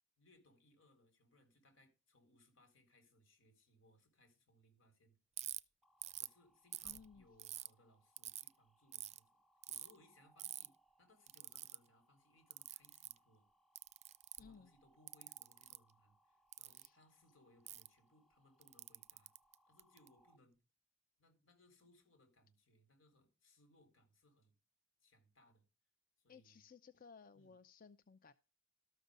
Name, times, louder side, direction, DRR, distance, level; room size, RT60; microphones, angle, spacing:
voice 1, 0.2-5.2 6.2-9.3 9.7-13.5 14.3-19.3 19.7-20.6 21.2-24.5 25.0-25.6 26.2-26.6 27.3-27.6, left 1 dB, 90° left, 7 dB, 4.3 m, -70 dB
Ratchet pawl, 5.4-5.6 6.0-6.3 6.7-7.7 8.2-8.5 8.9-9.2 9.6-9.9 10.4-10.7 11.3-11.8 12.5-13.2 13.8-14.5 15.1-15.8 16.5-16.9 17.7-17.9 18.6-20.1, right 13 dB, 35° right, 0.4 m, -47 dB
sound 1, 5.8-20.4, right 1 dB, ahead, 1.1 m, -75 dB
voice 2, 6.8-7.3 14.4-14.7 16.8-17.0 26.3-28.3, left 5 dB, 45° left, 12 dB, 0.6 m, -60 dB
13.0 x 6.8 x 5.1 m, 0.30 s
head